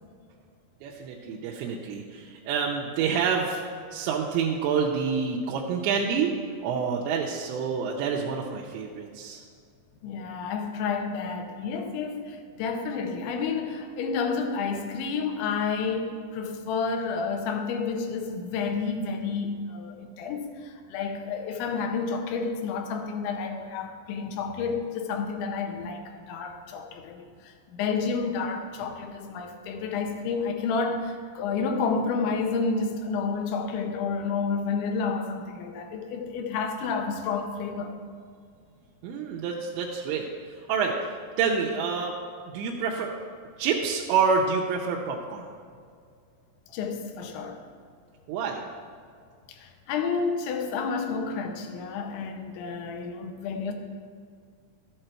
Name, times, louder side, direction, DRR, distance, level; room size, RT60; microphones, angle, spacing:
voice 1, 0.8-3.6 3.9-6.3 6.6-9.4 39.0-40.3 40.7-41.1 41.4-42.2 42.5-43.1 43.6-45.5 48.3-48.6, right 6 dB, 90° right, -2 dB, 3.1 m, -27 dB
voice 2, 10.0-38.0 46.7-47.6 49.5-53.7, left 5 dB, 85° left, 4 dB, 3.3 m, -30 dB
13.0 x 7.9 x 4.4 m, 2.2 s
omnidirectional pair, 5.1 m